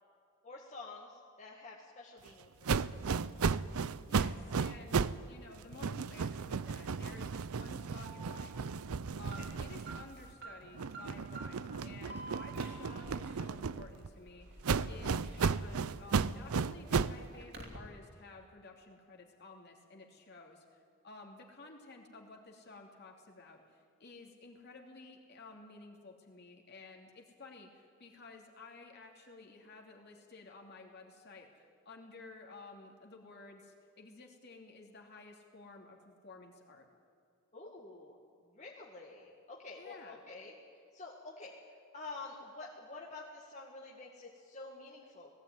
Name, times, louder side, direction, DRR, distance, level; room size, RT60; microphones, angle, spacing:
voice 1, 0.4-2.9 37.5-38.2 38.5-40.5 40.9-41.5 41.9-45.3, left 3 dB, 30° left, -3 dB, 2.0 m, -48 dB
sound 1, 2.6-5.2 5.5-10.3 10.7-14.1 14.6-17.2, right 5 dB, 80° right, 0.5 m, -34 dB
voice 2, 4.1-8.8 9.2-36.9 39.8-40.2, left 3 dB, 50° left, 1 dB, 2.9 m, -53 dB
Alarm, 8.0-16.2 16.5-17.8, right 2 dB, 45° right, 2.9 m, -49 dB
19.0 x 16.0 x 9.6 m, 2.3 s
head